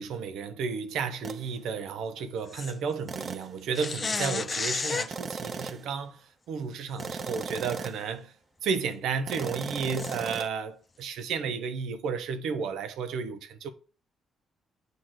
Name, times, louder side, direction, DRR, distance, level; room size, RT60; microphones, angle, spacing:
voice 1, 0.0-8.3 8.6-13.7, right 5 dB, 80° right, 0.8 m, -32 dB
sound 1, 1.2-1.5 3.1-3.6 5.1-5.9 7.0-8.1 9.3-10.5, right 5 dB, 40° right, 0.5 m, -37 dB
sound 2, 2.5-2.7 3.7-5.1 7.0-7.1 7.7-7.8 10.0-10.2, left 4 dB, 35° left, 0.3 m, -31 dB
6.8 x 3.1 x 5.7 m
cardioid pair, 90°, 0 cm